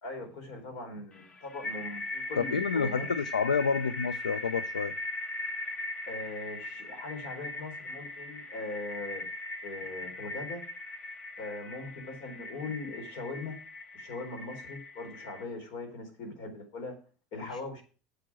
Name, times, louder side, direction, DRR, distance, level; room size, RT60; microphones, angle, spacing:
voice 1, 0.0-3.1 6.1-9.3 9.6-10.6 11.4-13.6 13.9-17.0 17.3-17.8, left 3 dB, 65° left, 4.2 m, -40 dB
sound 1, 1.1-15.4, left 2 dB, 30° left, 1.7 m, -40 dB
voice 2, 2.4-4.9 17.5-17.6, left 5 dB, 90° left, 0.4 m, -29 dB
8.9 x 8.0 x 6.1 m
hypercardioid pair, 70°, 4 cm